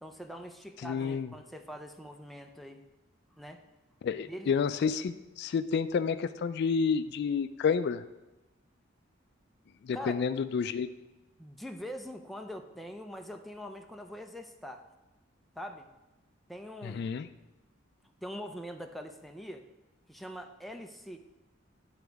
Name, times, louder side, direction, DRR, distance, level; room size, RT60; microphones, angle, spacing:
voice 1, 0.0-2.8 3.4-3.6 4.2-4.6 9.9-10.2 11.4-14.8 15.6-15.8 16.5-17.2 18.2-19.7 20.1-21.2, equal, ahead, 4 dB, 0.5 m, -43 dB
voice 2, 0.8-1.3 4.0-8.0 9.8-10.9 16.8-17.3, left 6 dB, 60° left, 12 dB, 0.3 m, -30 dB
10.5 x 3.9 x 4.7 m, 1.1 s
head